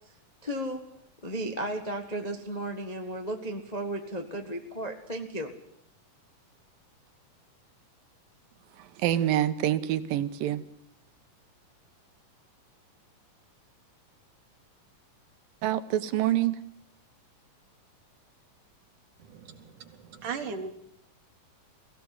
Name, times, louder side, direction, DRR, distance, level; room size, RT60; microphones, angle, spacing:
voice 1, 0.4-0.8 1.2-5.5, right 1 dB, 25° left, 4 dB, 0.8 m, -34 dB
voice 2, 9.0-10.6 15.6-16.6, right 12 dB, 90° right, 11 dB, 2.8 m, -26 dB
voice 3, 19.2-20.7, right 5 dB, 65° right, 4 dB, 3.8 m, -38 dB
22.5 x 16.5 x 9.6 m, 0.70 s
omnidirectional pair, 3.9 m